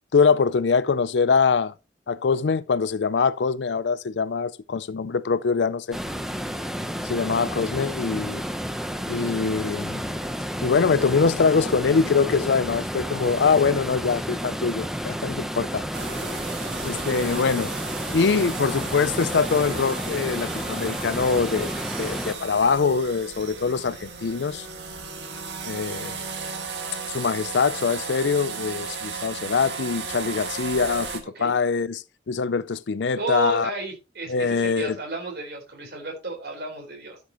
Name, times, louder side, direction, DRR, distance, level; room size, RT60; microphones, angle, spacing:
voice 1, 0.1-1.7 2.1-6.0 7.1-8.4 9.1-10.0 10.6-15.8 16.8-17.7 18.1-21.7 22.0-24.7 25.6-26.3 27.1-33.7 34.3-35.0, left 5 dB, 85° left, 0.5 m, -23 dB
sound 1, 5.9-22.4, equal, 5° right, 0.8 m, -31 dB
sound 2, 15.9-31.2, right 5 dB, 80° right, 2.0 m, -35 dB
voice 2, 33.1-37.2, right 1 dB, 65° right, 4.4 m, -32 dB
13.0 x 6.8 x 3.0 m
head